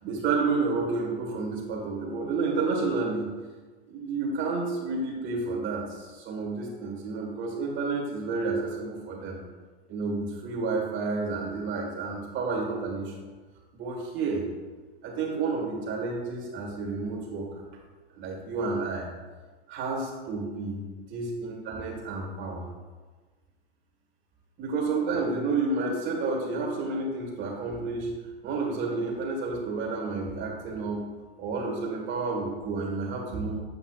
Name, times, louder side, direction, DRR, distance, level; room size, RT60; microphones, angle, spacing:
voice 1, 0.0-3.3 3.9-9.4 9.9-13.1 13.7-14.4 15.0-17.5 18.1-19.1 19.7-20.8 21.1-22.6 24.6-28.1 28.4-31.0 31.4-33.6, right 3 dB, 40° right, 0 dB, 1.8 m, -30 dB
8.3 x 5.3 x 2.4 m, 1.4 s
supercardioid pair, 120°, 30 cm